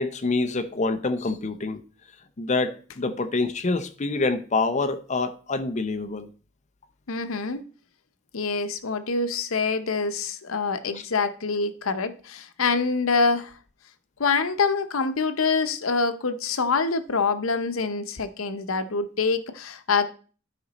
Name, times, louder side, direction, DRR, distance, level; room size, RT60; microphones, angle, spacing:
voice 1, 0.0-1.8 2.4-6.3 10.9-11.0, left 3 dB, 35° left, 0.6 m, -26 dB
voice 2, 7.1-7.6 8.3-13.6 14.2-20.1, left 4 dB, 80° left, 0.8 m, -25 dB
12.5 x 5.0 x 4.1 m
head